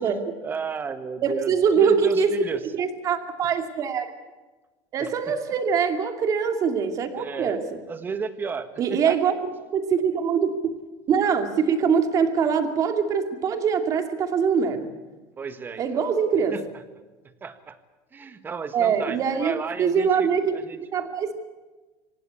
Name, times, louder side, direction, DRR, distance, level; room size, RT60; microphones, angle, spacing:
voice 1, 0.0-2.6 5.0-5.4 7.2-7.6 7.9-9.2 15.4-16.0 16.5-16.8 17.2-17.8 18.1-20.8, right 5 dB, 20° right, 11 dB, 1.6 m, -33 dB
voice 2, 1.2-2.4 2.7-4.1 4.9-7.6 8.8-9.3 9.7-10.7 11.1-14.9 15.8-16.6 18.7-21.3, right 6 dB, 35° right, 6 dB, 2.6 m, -23 dB
25.5 x 18.0 x 8.4 m, 1.2 s
cardioid pair, 145°, 9 cm